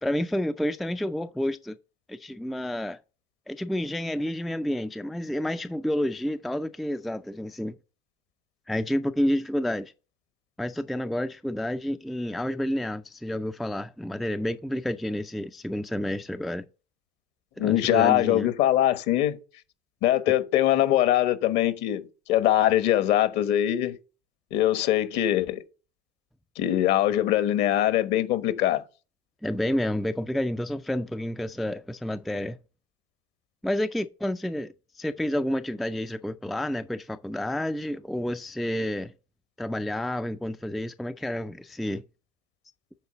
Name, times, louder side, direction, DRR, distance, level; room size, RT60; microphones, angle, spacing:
voice 1, 0.0-1.8 2.1-3.0 3.5-7.8 8.7-9.9 10.6-16.6 17.6-18.5 29.4-32.6 33.6-39.1 39.6-42.0, left 1 dB, ahead, 0.3 m, -29 dB
voice 2, 17.6-19.4 20.0-22.0 22.3-24.0 24.5-25.6 26.6-28.8, left 13 dB, 60° left, 1.2 m, -22 dB
8.1 x 4.0 x 6.7 m
supercardioid pair, 115°, 20 cm